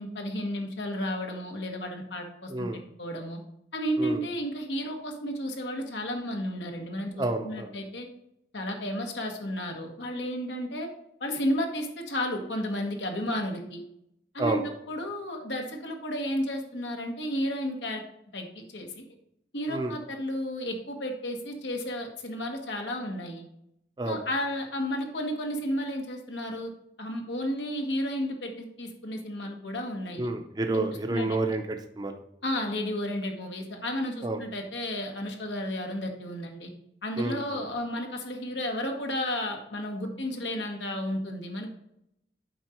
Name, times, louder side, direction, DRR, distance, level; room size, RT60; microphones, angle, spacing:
voice 1, 0.0-2.7 3.0-3.4 3.7-8.1 8.5-10.9 11.2-13.8 14.3-14.6 14.9-18.0 18.3-19.0 19.5-23.4 24.0-26.7 27.0-30.3 30.7-30.8 31.1-31.4 32.4-36.7 37.0-41.7, equal, 90° left, 3 dB, 1.5 m, -32 dB
voice 2, 2.5-2.8 4.0-4.2 7.2-7.7 14.4-14.6 19.7-19.9 24.0-24.2 30.2-32.2 34.2-34.4 37.2-37.6, right 2 dB, 25° right, 5 dB, 0.6 m, -30 dB
7.7 x 5.2 x 4.4 m, 0.77 s
head